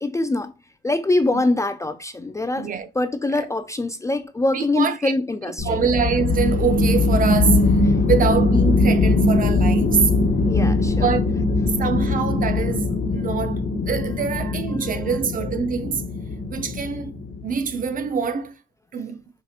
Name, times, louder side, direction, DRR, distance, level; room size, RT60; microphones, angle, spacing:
voice 1, 0.0-0.5 0.8-5.8 7.9-8.0 10.4-11.1 11.7-11.8 14.8-15.1, left 2 dB, 15° left, 0.3 m, -24 dB
voice 2, 2.6-2.9 3.3-3.5 4.5-5.1 5.6-7.8 8.1-10.1 11.0-11.3 11.8-16.0 16.5-17.1 17.4-18.6 18.9-19.2, right 6 dB, 45° right, 0.6 m, -24 dB
sound 1, 5.6-17.7, left 2 dB, 45° left, 1.2 m, -21 dB
4.7 x 2.8 x 2.4 m
cardioid pair, 90°, 20 cm